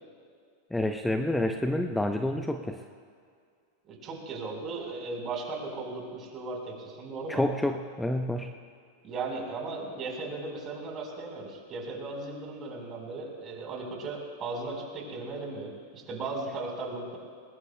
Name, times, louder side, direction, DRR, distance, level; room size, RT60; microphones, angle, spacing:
voice 1, 0.7-2.8 7.3-8.5, left 1 dB, 5° left, 6 dB, 0.7 m, -28 dB
voice 2, 3.9-7.4 9.0-17.2, right 3 dB, 35° right, 0 dB, 4.2 m, -37 dB
21.0 x 20.0 x 2.2 m, 2.2 s
hypercardioid pair, 95°, 0 cm